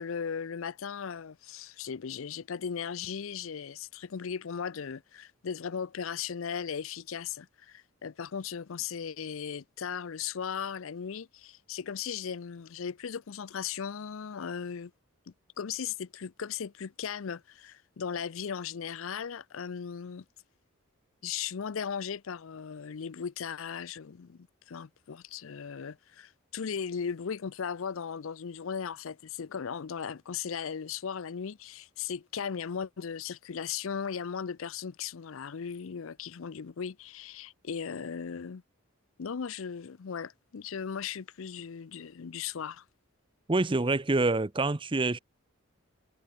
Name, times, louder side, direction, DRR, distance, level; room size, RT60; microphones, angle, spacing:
voice 1, 0.0-14.9 15.6-20.2 21.2-38.6 39.2-42.8, left 7 dB, 65° left, 0.5 m, -37 dB
voice 2, 43.5-45.2, right 2 dB, 25° right, 0.7 m, -26 dB
head